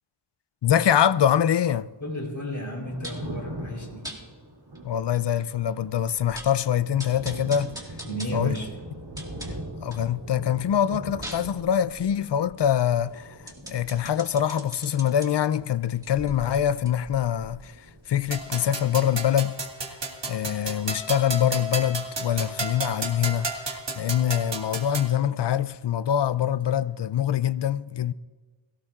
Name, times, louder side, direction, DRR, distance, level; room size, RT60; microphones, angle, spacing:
voice 1, 0.6-1.9 4.8-7.8 8.3-8.5 9.8-13.4 13.7-19.6 19.8-20.0 20.3-28.1, left 10 dB, 60° left, 0.5 m, -24 dB
voice 2, 2.0-4.1 8.0-8.7, equal, 40° left, 3.8 m, -33 dB
Thunder, 2.6-17.1 17.3-18.6, equal, 90° right, 3.1 m, -41 dB
sound 1, 3.0-3.3 4.0-4.2 4.7-4.8 5.1-5.2 5.7-5.8 6.1-6.6 7.0-10.1 10.5-15.3 15.9-18.6 18.9-19.0, right 1 dB, 10° right, 2.2 m, -43 dB
sound 2, 18.3-25.1, right 2 dB, 60° right, 1.9 m, -33 dB
22.5 x 16.5 x 2.4 m
wide cardioid pair, 55°, 47 cm